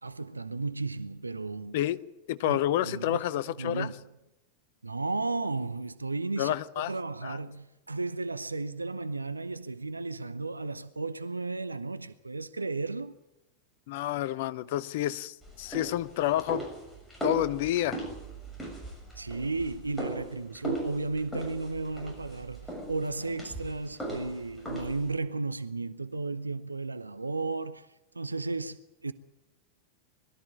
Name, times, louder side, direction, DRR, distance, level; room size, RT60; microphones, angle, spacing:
voice 1, 0.0-1.8 2.5-3.2 3.6-3.9 4.8-13.2 19.2-27.9 28.1-29.1, right 3 dB, 80° right, 0.7 m, -34 dB
voice 2, 2.3-3.9 6.4-6.9 7.2-7.4 13.9-16.7 17.2-18.0, left 13 dB, 50° left, 0.8 m, -29 dB
sound 1, 15.4-25.1, right 1 dB, 10° left, 6.8 m, -39 dB
22.0 x 13.5 x 9.8 m
figure-of-eight pair, 90°, 0 cm